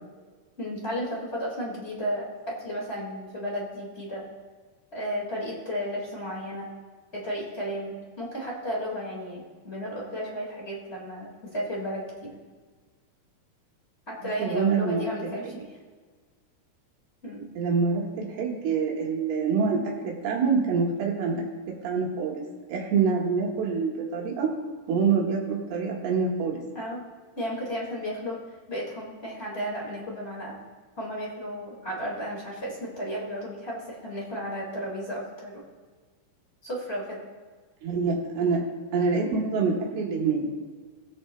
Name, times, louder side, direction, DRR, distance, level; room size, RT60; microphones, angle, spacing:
voice 1, 0.6-4.2 4.9-6.7 7.1-12.3 14.1-15.7 17.2-17.5 26.7-27.1 27.3-28.4 28.7-30.6 31.0-35.6 36.6-37.2, equal, 30° left, -4 dB, 1.2 m, -33 dB
voice 2, 14.4-15.1 15.4-15.5 17.6-21.5 21.8-22.4 22.7-24.5 24.9-26.6 37.8-38.6 38.9-40.6, right 5 dB, 80° right, -2 dB, 3.5 m, -26 dB
19.5 x 6.9 x 2.3 m, 1.5 s
omnidirectional pair, 4.5 m